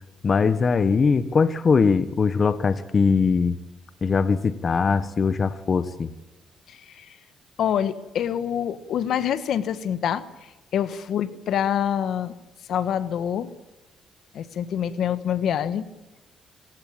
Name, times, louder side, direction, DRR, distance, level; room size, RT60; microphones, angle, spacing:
voice 1, 0.2-3.6 4.0-6.1, left 5 dB, 40° left, 12 dB, 1.1 m, -21 dB
voice 2, 6.7-7.1 7.6-12.3 12.7-13.5 14.3-15.8, left 9 dB, 70° left, 12 dB, 1.5 m, -26 dB
27.0 x 16.0 x 8.8 m, 1.1 s
cardioid pair, 90°, 0 cm